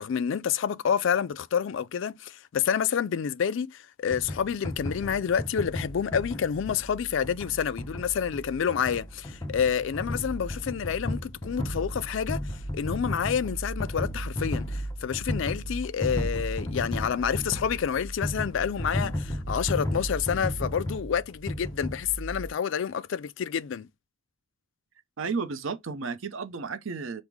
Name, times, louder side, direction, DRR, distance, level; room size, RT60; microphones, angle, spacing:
voice 1, 0.0-12.4 12.7-23.9, left 7 dB, 65° left, 0.4 m, -28 dB
sound 1, 4.1-22.5, equal, 15° left, 0.6 m, -34 dB
voice 2, 25.2-27.2, right 4 dB, 75° right, 0.7 m, -33 dB
5.3 x 2.1 x 4.6 m
head